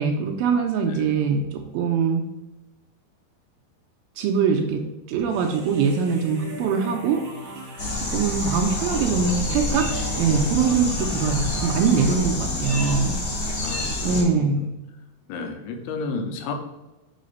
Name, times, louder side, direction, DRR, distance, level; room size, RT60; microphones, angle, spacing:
voice 1, 0.0-2.2 4.2-4.8 5.1-7.2 8.1-9.9 10.2-13.2 14.0-14.7, right 5 dB, 80° right, 2 dB, 2.3 m, -22 dB
voice 2, 0.8-1.1 12.4-13.0 13.6-14.7 15.3-16.5, left 4 dB, 80° left, 5 dB, 2.8 m, -33 dB
sound 1, 5.3-12.1, right 1 dB, 50° right, 2.4 m, -37 dB
sound 2, 7.8-14.2, left 2 dB, 45° left, 1.7 m, -28 dB
5.7 x 4.2 x 5.2 m, 1.0 s
omnidirectional pair, 4.5 m